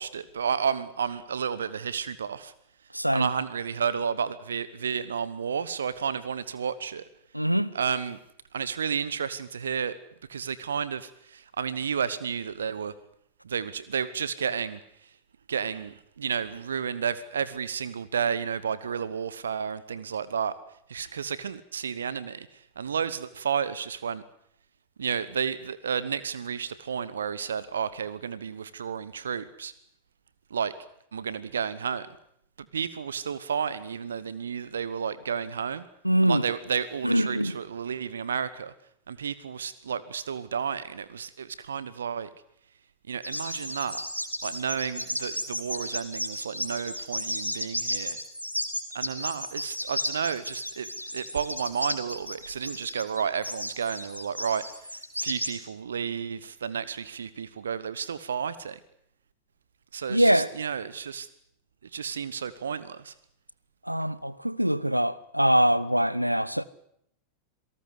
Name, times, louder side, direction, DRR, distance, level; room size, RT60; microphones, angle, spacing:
voice 1, 0.0-2.5 3.1-7.0 7.7-8.2 8.5-10.0 10.3-12.9 13.4-15.1 15.5-20.6 20.9-24.2 25.0-29.7 30.5-30.7 31.1-32.1 32.7-35.8 36.2-38.7 39.1-42.3 43.1-44.1 44.4-48.2 48.9-58.8 59.9-61.3 61.8-63.1, right 7 dB, 70° right, 1.1 m, -32 dB
voice 2, 2.9-3.3 7.3-7.7 36.0-36.4 37.0-37.5 60.1-60.5 63.9-66.7, right 1 dB, 90° right, 0.8 m, -23 dB
sound 1, 43.2-55.5, left 1 dB, 90° left, 2.8 m, -33 dB
27.0 x 18.0 x 8.0 m
figure-of-eight pair, 90°, 0 cm